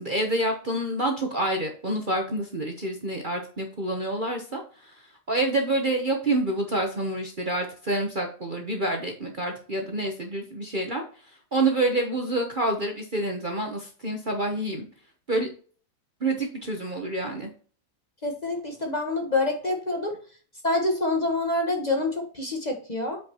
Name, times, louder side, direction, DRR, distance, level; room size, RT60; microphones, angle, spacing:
voice 1, 0.0-4.9 5.3-11.0 11.5-14.8 15.3-15.5 16.2-17.5, right 2 dB, 35° right, 2 dB, 1.0 m, -27 dB
voice 2, 18.2-20.1 20.6-23.2, left 2 dB, 25° left, 2 dB, 1.3 m, -26 dB
8.5 x 5.2 x 2.9 m, 0.42 s
omnidirectional pair, 1.8 m